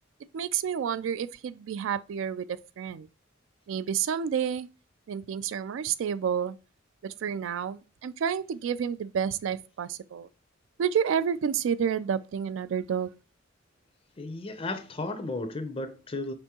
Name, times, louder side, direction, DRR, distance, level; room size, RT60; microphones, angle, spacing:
voice 1, 0.3-3.1 3.7-4.7 5.1-6.5 7.2-10.3 10.8-13.1, right 8 dB, 75° right, 0.3 m, -30 dB
voice 2, 14.2-16.3, left 2 dB, 30° left, 0.4 m, -34 dB
5.2 x 3.4 x 2.9 m
head